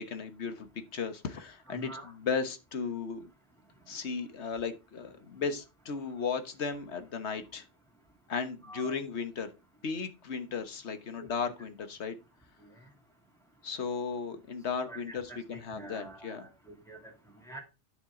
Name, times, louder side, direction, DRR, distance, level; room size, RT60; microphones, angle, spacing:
voice 1, 0.0-3.3 3.9-7.6 8.3-9.5 9.8-12.2 13.6-16.4, left 5 dB, 85° left, 9 dB, 1.5 m, -35 dB
voice 2, 1.7-2.1 8.6-9.0 11.2-11.3 14.8-15.4 15.8-17.1 17.5-17.6, right 1 dB, 5° left, -1 dB, 2.4 m, -46 dB
9.9 x 7.2 x 3.7 m, 0.27 s
omnidirectional pair, 1.1 m